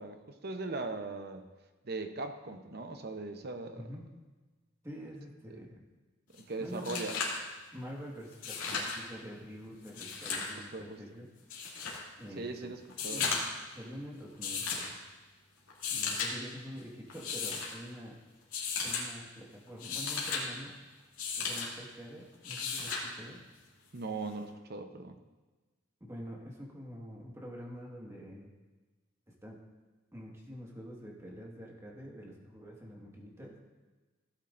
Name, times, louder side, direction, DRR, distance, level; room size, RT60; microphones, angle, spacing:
voice 1, 0.0-1.5 1.8-3.8 6.5-7.2 10.5-11.0 12.4-13.3 23.9-25.2, right 3 dB, 50° right, 7 dB, 0.8 m, -39 dB
voice 2, 3.8-4.1 4.8-5.8 6.6-7.1 7.7-11.3 12.2-12.7 13.1-15.0 15.9-18.2 18.8-20.8 21.4-23.4 26.0-28.5 29.4-29.6 30.1-33.6, equal, 15° right, -2 dB, 1.7 m, -46 dB
sound 1, 6.4-6.5 6.7-7.4 8.3-9.0 9.8-10.5 11.5-12.0 12.9-13.6 14.4-14.9 15.7-16.3 17.1-17.7 18.5-19.0 19.7-20.4 21.2-21.7 22.4-23.1 24.5-24.6, left 5 dB, 90° left, 2.5 m, -35 dB
16.5 x 8.9 x 2.6 m, 1.3 s
head